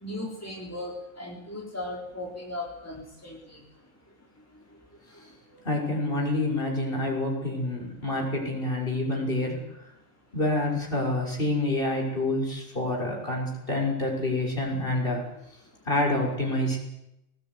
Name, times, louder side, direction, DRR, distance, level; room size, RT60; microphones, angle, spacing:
voice 1, 0.0-3.4, left 1 dB, 10° left, -2 dB, 4.1 m, -37 dB
voice 2, 5.6-9.6 10.3-15.2 15.9-16.8, left 1 dB, 45° left, -1 dB, 6.5 m, -27 dB
22.0 x 19.5 x 9.7 m, 0.88 s
omnidirectional pair, 1.3 m